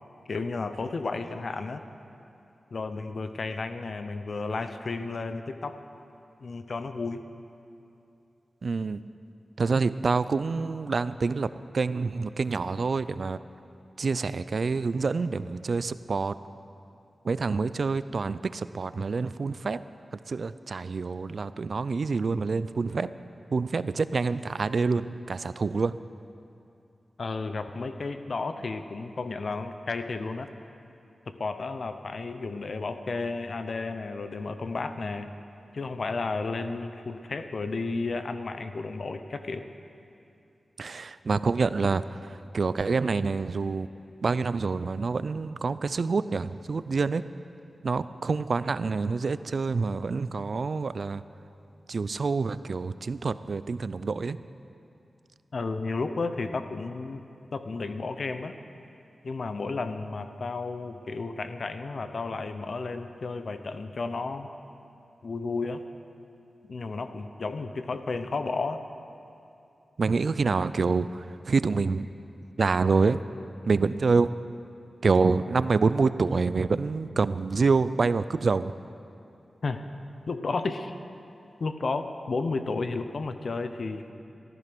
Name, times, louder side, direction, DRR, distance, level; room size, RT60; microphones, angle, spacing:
voice 1, 0.3-1.8 2.7-5.8 6.4-7.2 27.2-30.5 31.3-35.3 35.7-39.6 55.5-57.2 57.5-58.6 59.2-64.5 65.2-65.8 66.7-68.8 79.6-79.8 80.3-81.0 81.6-84.1, left 3 dB, 65° left, 9 dB, 0.8 m, -32 dB
voice 2, 8.6-9.0 9.6-11.5 11.7-13.4 14.0-16.3 17.2-19.8 20.3-23.1 23.5-25.9 40.8-42.0 42.5-43.9 44.2-47.2 47.8-51.2 51.9-54.4 70.0-72.1 72.6-73.2 73.7-74.3 75.0-78.7, right 4 dB, 65° right, 14 dB, 0.4 m, -27 dB
15.0 x 13.5 x 6.1 m, 2.7 s
wide cardioid pair, 70°, 0 cm